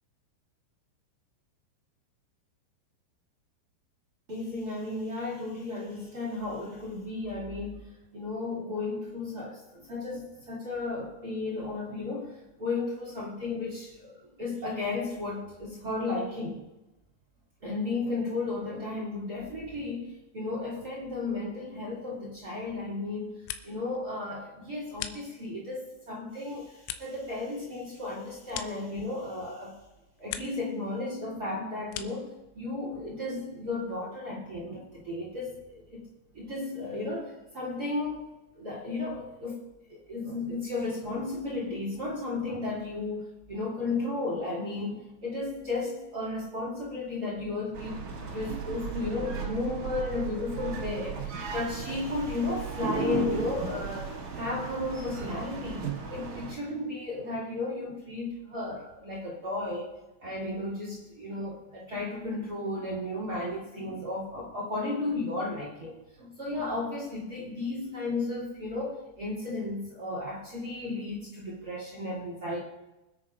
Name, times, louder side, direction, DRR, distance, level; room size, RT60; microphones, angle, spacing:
voice 1, 4.3-7.9 8.1-16.6 17.6-23.4 23.6-29.8 30.2-36.0 36.3-38.3 38.6-39.6 39.9-59.9 60.2-72.6, left 2 dB, 30° right, -5 dB, 1.8 m, -34 dB
sound 1, 23.2-24.0 24.3-25.7 26.2-29.4 29.8-30.7 31.0-32.4, left 11 dB, 85° left, 3.1 m, -43 dB
sound 2, 47.7-56.5, right 6 dB, 75° right, 1.7 m, -36 dB
25.0 x 10.0 x 2.5 m, 0.97 s
omnidirectional pair, 5.8 m